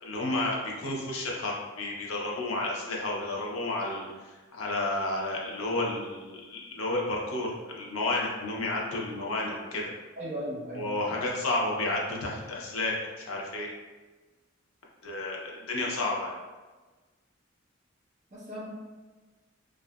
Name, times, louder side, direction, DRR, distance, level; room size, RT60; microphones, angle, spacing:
voice 1, 0.0-9.9 10.7-13.7 15.0-16.3, left 2 dB, 90° left, -2 dB, 0.6 m, -31 dB
voice 2, 10.2-10.8 11.1-11.2 18.3-18.7, equal, 35° right, -7 dB, 0.9 m, -37 dB
2.6 x 2.3 x 2.2 m, 1.3 s
head